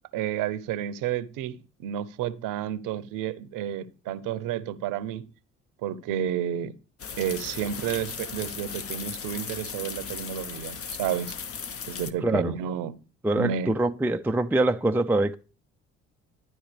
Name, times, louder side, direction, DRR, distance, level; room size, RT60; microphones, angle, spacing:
voice 1, 0.1-5.3 5.8-6.7 7.2-11.4 11.9-12.9 13.3-13.7, right 10 dB, 65° right, 0.9 m, -31 dB
sound 1, 7.0-12.1, left 6 dB, 40° left, 1.1 m, -37 dB
voice 2, 12.2-12.5 13.2-15.4, right 2 dB, 5° right, 0.5 m, -24 dB
12.0 x 9.5 x 3.4 m
hypercardioid pair, 55°, 35 cm